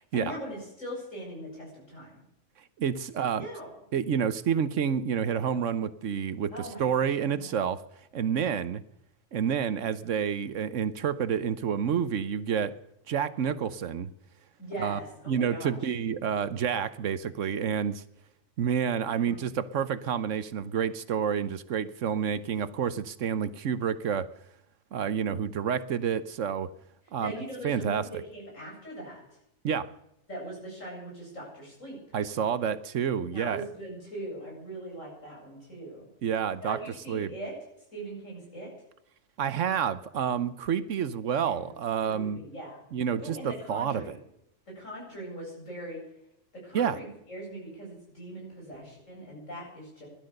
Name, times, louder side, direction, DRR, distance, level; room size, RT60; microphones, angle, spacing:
voice 1, 0.1-2.1 3.4-3.7 6.5-7.6 14.6-15.8 19.1-19.5 27.2-29.2 30.3-32.0 33.3-36.1 36.6-37.6 37.9-38.7 41.4-41.8 42.1-42.8 43.2-44.2 44.7-46.0 46.5-50.1, right 1 dB, 70° left, -3 dB, 8.5 m, -41 dB
voice 2, 2.8-3.5 3.9-7.8 8.1-8.8 9.3-12.7 13.1-14.1 14.8-15.0 15.3-18.0 18.6-24.3 24.9-26.7 27.1-27.3 27.6-28.1 29.6-29.9 32.1-33.7 36.2-36.8 37.1-37.3 39.4-42.4 42.9-43.4 43.7-44.2 46.7-47.0, right 7 dB, 70° right, 14 dB, 1.2 m, -29 dB
17.0 x 12.5 x 6.5 m, 0.81 s
omnidirectional pair, 1.4 m